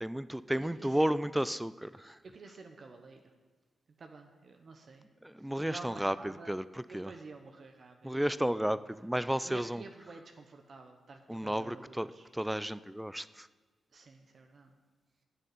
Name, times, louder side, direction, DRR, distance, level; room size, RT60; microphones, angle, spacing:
voice 1, 0.0-2.2 5.2-6.7 6.9-7.1 8.0-9.8 11.3-12.1 12.3-13.5, right 1 dB, 5° right, 16 dB, 0.5 m, -32 dB
voice 2, 0.5-1.2 2.2-3.3 4.0-5.1 5.4-6.5 6.9-8.7 9.4-12.3 13.9-14.7, right 3 dB, 55° right, 4 dB, 1.0 m, -50 dB
9.2 x 6.6 x 8.3 m, 1.4 s
supercardioid pair, 45°, 0 cm